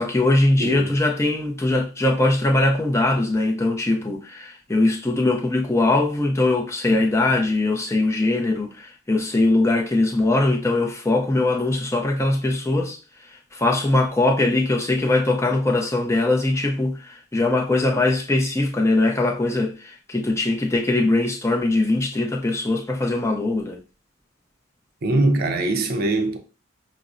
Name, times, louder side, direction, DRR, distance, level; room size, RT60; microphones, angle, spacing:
voice 1, 0.0-23.8, left 2 dB, 15° left, 0.5 m, -21 dB
voice 2, 0.6-0.9 25.0-26.4, right 2 dB, 45° right, 0.5 m, -22 dB
5.7 x 2.0 x 2.5 m
head